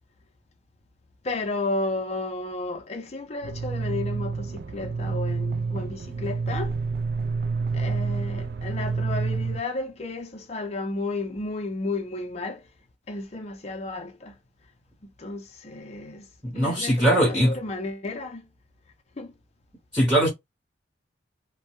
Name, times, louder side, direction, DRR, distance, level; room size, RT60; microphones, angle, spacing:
voice 1, 1.2-6.8 7.7-12.6 13.1-14.3 15.0-16.3 16.5-18.5 19.2-19.3, left 2 dB, 35° left, 0.5 m, -33 dB
sound 1, 3.4-9.6, right 4 dB, 55° right, 0.3 m, -28 dB
voice 2, 16.4-17.5 19.9-20.3, right 1 dB, 5° right, 0.8 m, -21 dB
2.1 x 2.1 x 2.9 m
head